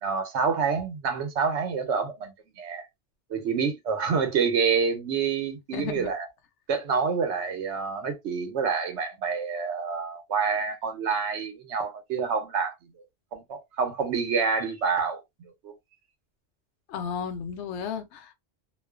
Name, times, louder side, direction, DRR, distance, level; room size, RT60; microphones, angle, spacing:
voice 1, 0.0-2.9 3.3-6.3 6.7-12.7 13.3-15.2 15.6-15.7, right 5 dB, 85° right, 1.1 m, -27 dB
voice 2, 5.7-6.1 16.9-18.3, left 7 dB, 85° left, 0.9 m, -33 dB
2.4 x 2.3 x 2.3 m
omnidirectional pair, 1.1 m